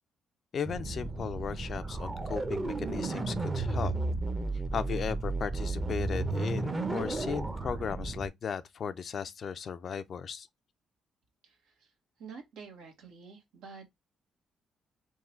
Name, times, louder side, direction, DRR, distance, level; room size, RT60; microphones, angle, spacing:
voice 1, 0.5-3.9 4.7-10.5, left 7 dB, 55° left, 0.5 m, -36 dB
sound 1, 0.7-8.3, right 2 dB, 25° right, 0.7 m, -33 dB
voice 2, 11.4-11.9 12.2-13.9, right 5 dB, 90° right, 1.5 m, -49 dB
3.6 x 2.3 x 4.4 m
cardioid pair, 90°, 0 cm